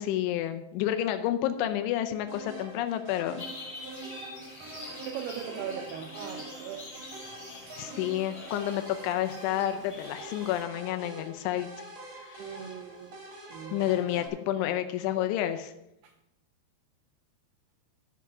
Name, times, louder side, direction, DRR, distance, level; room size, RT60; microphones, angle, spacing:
voice 1, 0.0-3.4 7.5-11.7 12.1-12.5 13.7-15.7, left 12 dB, 90° left, 8 dB, 3.1 m, -30 dB
sound 1, 2.3-14.3, right 2 dB, 40° right, 1.9 m, -45 dB
sound 2, 3.4-10.6, left 2 dB, 25° left, 3.9 m, -45 dB
voice 2, 5.0-6.9 7.2-7.8 12.4-13.2 13.5-13.9 16.0-16.1, right 8 dB, 90° right, 5 dB, 2.3 m, -40 dB
12.0 x 5.9 x 5.9 m, 0.86 s
omnidirectional pair, 5.3 m